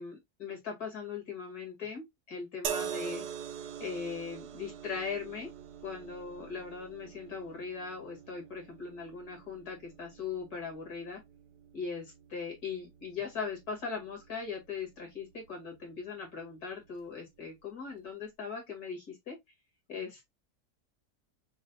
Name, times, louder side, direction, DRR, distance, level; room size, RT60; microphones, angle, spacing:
voice 1, 0.0-3.2 3.8-5.5 5.8-11.2 11.7-19.4 19.9-20.3, left 5 dB, 70° left, 2.4 m, -39 dB
sound 1, 2.6-16.0 16.9-17.1, right 8 dB, 85° right, 1.2 m, -44 dB
6.2 x 2.2 x 2.6 m
omnidirectional pair, 1.7 m